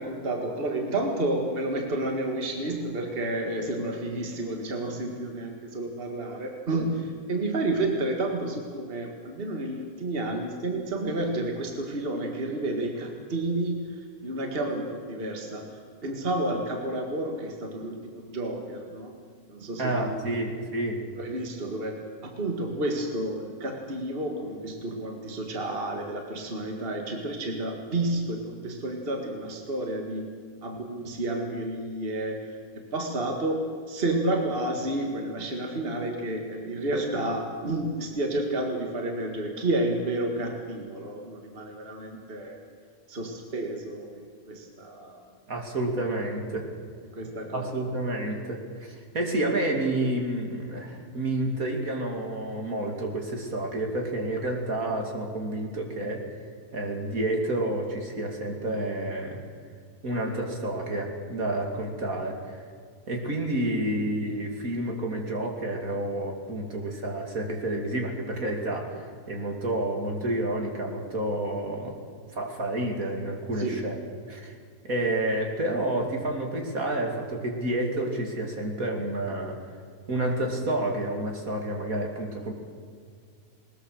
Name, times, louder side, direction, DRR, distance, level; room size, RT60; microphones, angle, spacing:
voice 1, 0.0-15.7 16.0-19.2 19.5-20.6 21.2-30.3 30.6-32.6 32.9-33.6 33.9-42.6 43.1-45.2 47.1-47.7 73.6-73.8, right 2 dB, 40° right, 2 dB, 2.1 m, -30 dB
voice 2, 19.8-21.0 45.5-46.7 47.5-56.2 56.7-59.4 60.0-62.6 63.1-72.0 72.3-74.0 74.3-74.6 74.8-79.6 80.1-82.5, right 1 dB, 60° right, 1 dB, 3.1 m, -29 dB
20.5 x 20.5 x 6.6 m, 2.1 s
omnidirectional pair, 1.6 m